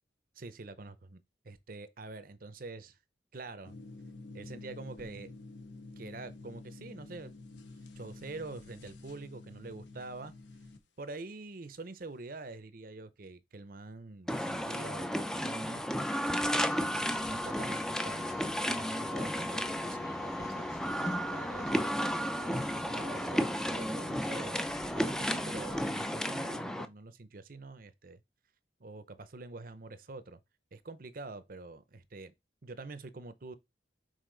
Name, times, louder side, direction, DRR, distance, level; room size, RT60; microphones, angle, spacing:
voice 1, 0.3-3.0 3.3-3.7 4.3-5.3 6.0-7.4 8.0-10.3 11.0-15.8 16.3-17.8 18.0-24.6 24.9-28.2 28.8-30.4 30.7-32.3 32.6-33.6, right 3 dB, 50° right, 0.7 m, -46 dB
sound 1, 3.6-10.8, left 2 dB, 75° left, 1.3 m, -49 dB
sound 2, 14.3-26.9, equal, 5° left, 0.4 m, -33 dB
sound 3, 16.6-26.1, left 2 dB, 20° left, 0.8 m, -52 dB
6.5 x 4.1 x 3.9 m
head